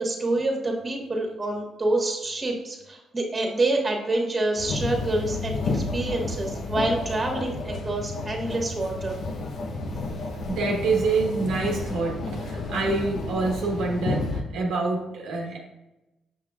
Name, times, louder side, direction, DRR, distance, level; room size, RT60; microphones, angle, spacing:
voice 1, 0.0-9.2, right 2 dB, 25° right, 0 dB, 1.6 m, -27 dB
sound 1, 4.6-14.4, left 3 dB, 60° left, 0.9 m, -31 dB
voice 2, 10.5-15.6, right 3 dB, 85° right, -1 dB, 1.2 m, -26 dB
6.8 x 5.8 x 2.4 m, 0.99 s
cardioid pair, 90°, 0 cm